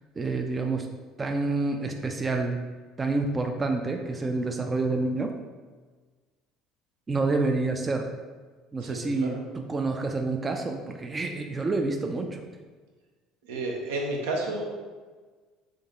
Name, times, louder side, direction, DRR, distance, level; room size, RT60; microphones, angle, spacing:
voice 1, 0.2-0.9 1.2-2.6 3.0-5.3 7.1-8.1 8.7-12.4, right 3 dB, 25° right, 4 dB, 0.4 m, -28 dB
voice 2, 8.8-9.4 13.5-14.7, right 2 dB, 75° right, 0 dB, 0.8 m, -31 dB
3.9 x 3.5 x 3.6 m, 1.4 s
hypercardioid pair, 65°, 0 cm